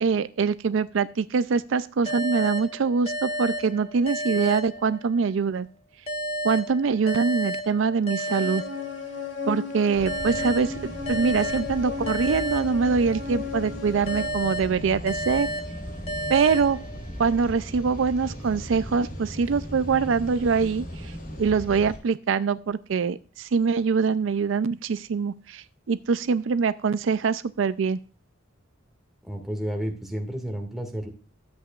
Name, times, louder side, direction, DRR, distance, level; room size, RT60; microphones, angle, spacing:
voice 1, 0.0-5.7 6.4-8.6 9.5-15.5 16.3-16.8 17.2-20.9 21.4-28.0, right 5 dB, 70° right, 14 dB, 0.4 m, -24 dB
sound 1, 2.1-5.4 6.1-9.4 10.1-13.4 14.1-17.4, equal, 30° left, 1.2 m, -33 dB
sound 2, 8.4-14.3, left 6 dB, 65° left, 2.1 m, -35 dB
sound 3, 9.9-22.0, equal, 50° left, 4.0 m, -38 dB
voice 2, 29.2-31.1, equal, ahead, 2 dB, 1.9 m, -31 dB
13.0 x 8.0 x 2.4 m, 0.37 s
head